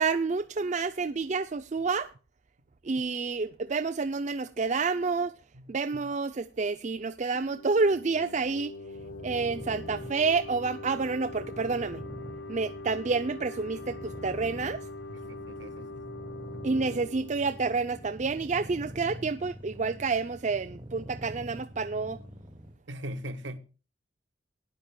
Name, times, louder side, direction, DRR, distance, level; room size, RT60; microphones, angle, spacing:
voice 1, 0.0-2.1 2.8-5.3 5.7-8.7 9.2-12.0 12.5-14.8 16.6-22.2, right 4 dB, 35° right, 0.4 m, -29 dB
sound 1, 7.3-18.8, left 2 dB, 65° left, 0.7 m, -43 dB
sound 2, 8.9-22.8, equal, 20° right, 1.3 m, -45 dB
voice 2, 15.1-16.1 22.9-23.6, equal, 70° right, 1.3 m, -40 dB
18.5 x 10.0 x 2.3 m
head